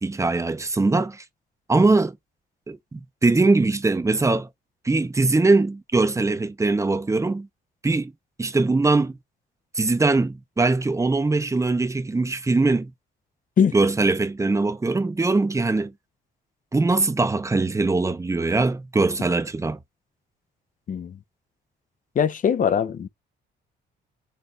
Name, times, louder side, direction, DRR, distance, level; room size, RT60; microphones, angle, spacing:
voice 1, 0.0-1.2 1.7-2.2 2.7-4.5 4.8-7.5 7.8-8.1 8.4-9.2 9.7-12.9 13.7-15.9 16.7-19.8, right 3 dB, 15° right, 0.6 m, -21 dB
voice 2, 22.2-23.1, left 7 dB, 40° left, 0.5 m, -21 dB
4.3 x 3.2 x 3.2 m
cardioid pair, 90°, 20 cm